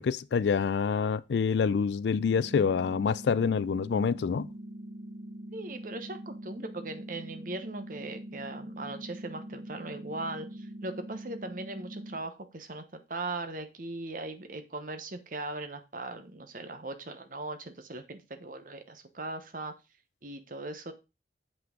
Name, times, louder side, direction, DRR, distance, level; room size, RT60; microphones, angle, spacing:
voice 1, 0.0-4.5, left 6 dB, 70° left, 0.3 m, -27 dB
sound 1, 2.2-12.2, right 1 dB, 75° right, 1.6 m, -43 dB
voice 2, 5.5-19.7 20.2-20.9, right 2 dB, 45° right, 1.0 m, -39 dB
7.6 x 5.9 x 3.7 m
head